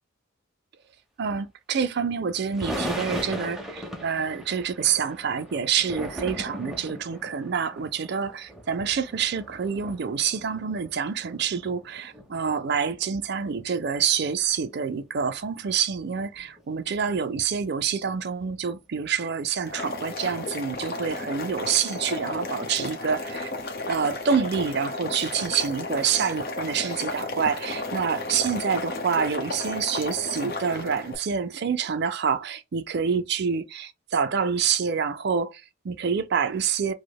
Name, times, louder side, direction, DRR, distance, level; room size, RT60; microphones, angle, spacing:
voice 1, 1.2-23.5 23.9-36.9, right 6 dB, 50° right, 0.4 m, -27 dB
sound 1, 2.5-13.9 14.2-14.3 14.5-14.6 15.0-15.6 16.3-16.6 16.9-17.1 17.6-17.8 18.5-18.6, equal, ahead, 0.6 m, -38 dB
Boiling, 19.6-31.2, left 2 dB, 45° left, 0.7 m, -33 dB
4.9 x 2.1 x 2.2 m
head